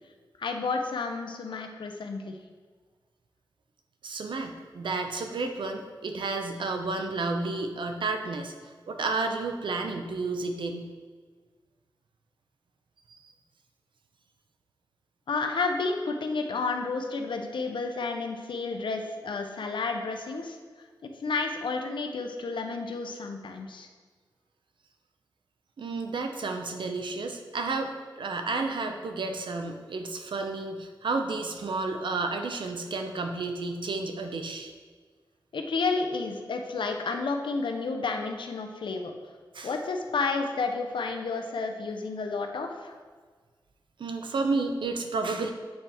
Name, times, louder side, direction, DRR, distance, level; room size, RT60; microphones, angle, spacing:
voice 1, 0.4-2.3 15.3-20.6 21.0-23.9 35.5-39.1 39.6-43.0, left 4 dB, 80° left, 4 dB, 0.6 m, -31 dB
voice 2, 4.0-8.5 8.9-10.9 25.8-34.7 39.5-39.7 44.0-45.5, right 3 dB, 80° right, 5 dB, 0.7 m, -31 dB
7.9 x 4.3 x 3.4 m, 1.5 s
wide cardioid pair, 100°, 8 cm